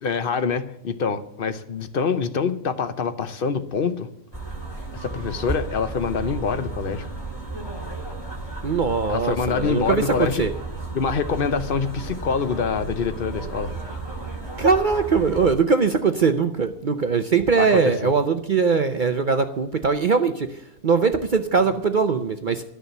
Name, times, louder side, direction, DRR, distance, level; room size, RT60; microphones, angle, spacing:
voice 1, 0.0-4.1 4.9-7.1 9.1-10.5 10.9-13.7 17.6-18.1, left 5 dB, 45° left, 0.8 m, -25 dB
sound 1, 4.3-15.5, right 3 dB, 15° left, 2.2 m, -33 dB
voice 2, 8.6-10.5 14.6-22.6, right 5 dB, 55° right, 0.5 m, -21 dB
12.5 x 6.7 x 8.1 m
omnidirectional pair, 1.6 m